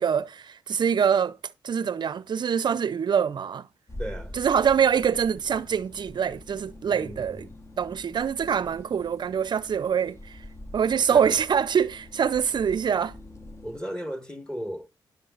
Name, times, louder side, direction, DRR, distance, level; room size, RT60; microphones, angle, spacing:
voice 1, 0.0-1.4 1.6-3.7 4.3-7.5 7.8-10.4 10.7-13.1, right 7 dB, 55° right, 0.6 m, -24 dB
sound 1, 3.9-13.8, left 1 dB, 30° left, 1.3 m, -45 dB
voice 2, 4.0-4.3 6.9-7.6 11.1-11.4 13.6-14.9, equal, 10° left, 1.7 m, -35 dB
18.5 x 6.4 x 2.5 m
supercardioid pair, 50°, 9 cm